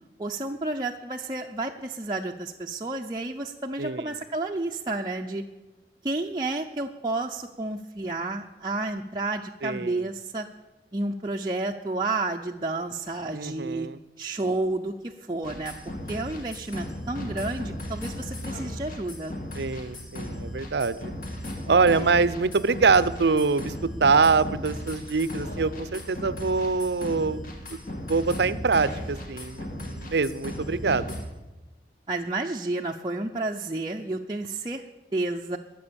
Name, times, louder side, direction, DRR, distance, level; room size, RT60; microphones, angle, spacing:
voice 1, 0.2-5.5 6.0-10.5 10.9-13.9 14.2-19.4 32.1-34.8 35.1-35.6, right 2 dB, 25° right, 0 dB, 0.6 m, -31 dB
voice 2, 3.8-4.1 9.6-10.1 13.3-14.0 19.5-21.1 21.7-27.4 28.1-31.1, right 4 dB, 70° right, 16 dB, 0.6 m, -24 dB
sound 1, 15.4-31.3, left 1 dB, 50° left, 2.1 m, -36 dB
21.0 x 7.6 x 7.0 m, 1.2 s
head